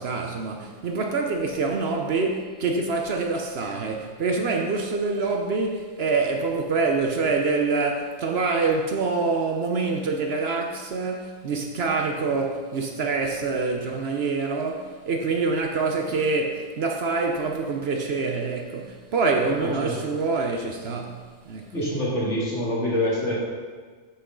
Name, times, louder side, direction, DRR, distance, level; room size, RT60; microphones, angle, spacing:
voice 1, 0.0-21.7, right 4 dB, 60° right, 0.8 m, -26 dB
voice 2, 19.6-20.0 21.7-23.4, left 1 dB, 60° left, 2.2 m, -26 dB
7.8 x 6.2 x 3.7 m
omnidirectional pair, 1.3 m